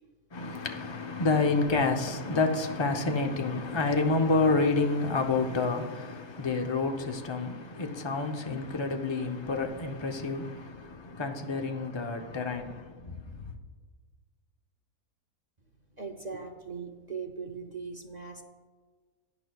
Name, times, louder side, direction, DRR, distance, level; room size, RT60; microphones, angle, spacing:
voice 1, 0.3-13.2, left 3 dB, 35° left, 0.4 m, -29 dB
voice 2, 16.0-18.4, right 5 dB, 45° right, 0.5 m, -39 dB
16.5 x 11.0 x 2.3 m
omnidirectional pair, 1.6 m